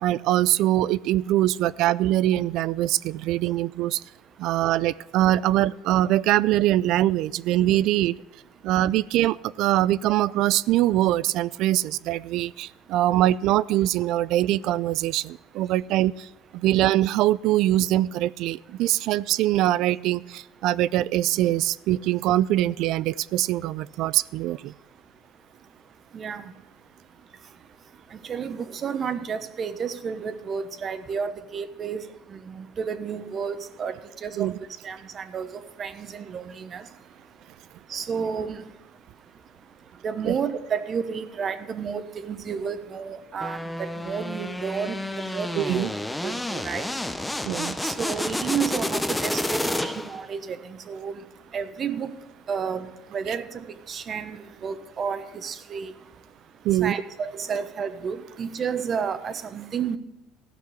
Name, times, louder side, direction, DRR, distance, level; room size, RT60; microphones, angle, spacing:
voice 1, 0.0-4.0 4.4-8.2 8.6-16.3 16.6-24.7 34.4-34.5 40.3-40.4 45.6-45.9 47.5-47.8 56.6-57.0, right 14 dB, 65° right, 19 dB, 0.3 m, -23 dB
voice 2, 28.3-32.0 32.3-33.9 34.2-34.5 34.8-35.5 35.8-36.8 37.9-38.6 40.0-45.0 45.2-45.8 46.2-46.8 47.8-51.1 51.5-52.1 52.5-55.9 56.8-60.0, right 6 dB, 35° right, 11 dB, 1.0 m, -31 dB
sound 1, 43.4-50.3, left 1 dB, 5° left, 0.7 m, -30 dB
14.0 x 6.0 x 8.2 m, 0.95 s
supercardioid pair, 110°, 0 cm